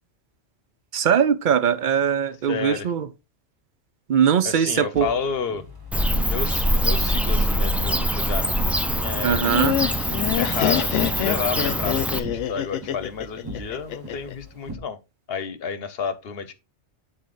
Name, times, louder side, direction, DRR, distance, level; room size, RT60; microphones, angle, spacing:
voice 1, 0.9-3.1 4.1-5.1 9.2-9.8, right 8 dB, 55° right, 0.7 m, -21 dB
voice 2, 2.5-2.9 4.4-5.6 6.2-9.5 10.4-15.0 15.3-16.5, left 6 dB, 60° left, 1.0 m, -31 dB
sound 1, 4.9-14.8, equal, 20° right, 1.0 m, -40 dB
Bird / Cricket, 5.9-12.2, equal, ahead, 0.3 m, -23 dB
Laughter, 9.3-14.3, left 11 dB, 90° left, 0.9 m, -26 dB
8.6 x 3.9 x 3.8 m
omnidirectional pair, 1.2 m